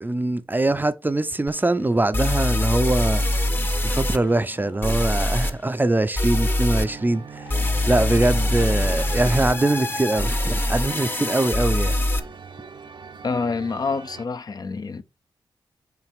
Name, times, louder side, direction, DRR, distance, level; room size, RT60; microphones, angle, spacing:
voice 1, 0.0-3.2 3.8-7.5 7.9-11.9, right 2 dB, 20° right, 0.6 m, -22 dB
sound 1, 1.5-1.6 2.1-4.2 4.8-5.5 6.2-6.9 7.5-12.2, left 1 dB, 20° left, 0.9 m, -23 dB
sound 2, 1.9-5.7 7.3-11.7, left 1 dB, 85° left, 2.1 m, -45 dB
sound 3, 6.3-14.2, right 6 dB, 60° right, 0.7 m, -41 dB
voice 2, 13.2-15.0, left 4 dB, 45° left, 0.6 m, -27 dB
5.8 x 3.5 x 5.0 m
cardioid pair, 55°, 9 cm